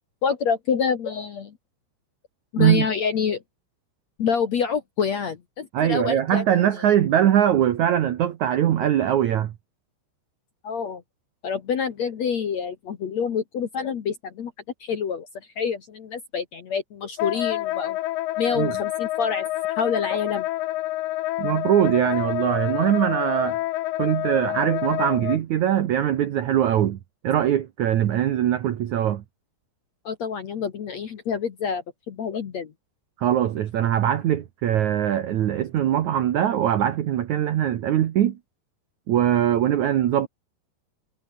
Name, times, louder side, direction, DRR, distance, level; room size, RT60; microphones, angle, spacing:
voice 1, 0.2-1.5 2.5-3.4 4.2-6.4 6.8-6.9 10.6-11.0 11.4-14.5 14.8-15.3 15.6-18.0 18.4-19.5 19.8-20.5 30.0-32.7, left 6 dB, 55° left, 2.0 m, -27 dB
voice 2, 5.7-9.5 18.5-18.8 21.4-23.6 24.0-27.0 27.2-29.2 33.2-38.4 39.1-40.3, right 11 dB, 85° right, 1.6 m, -22 dB
Wind instrument woodwind instrument, 17.2-25.4, left 16 dB, 85° left, 1.9 m, -28 dB
omnidirectional pair, 5.3 m